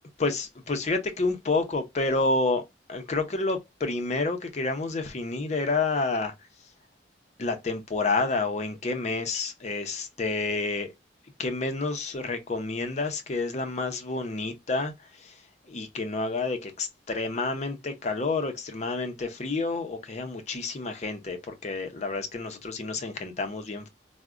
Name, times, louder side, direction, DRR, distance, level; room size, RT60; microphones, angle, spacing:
voice 1, 0.2-2.6 2.9-6.3 7.4-10.9 11.4-14.9 15.2-15.3 15.7-23.9, left 3 dB, 40° left, 0.5 m, -29 dB
4.6 x 2.1 x 2.4 m
head